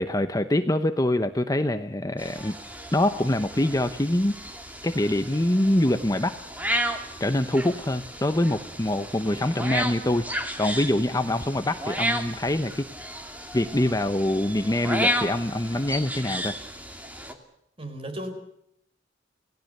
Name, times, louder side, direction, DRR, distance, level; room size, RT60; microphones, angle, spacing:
voice 1, 0.0-2.6 2.9-4.3 4.8-6.4 7.2-10.3 10.6-12.9 13.5-16.5, left 1 dB, 20° left, 9 dB, 0.9 m, -24 dB
sound 1, 2.2-17.3, equal, 10° right, 2.5 m, -33 dB
voice 2, 17.8-18.3, right 1 dB, 30° right, 7 dB, 4.8 m, -35 dB
28.0 x 17.5 x 6.7 m, 0.76 s
head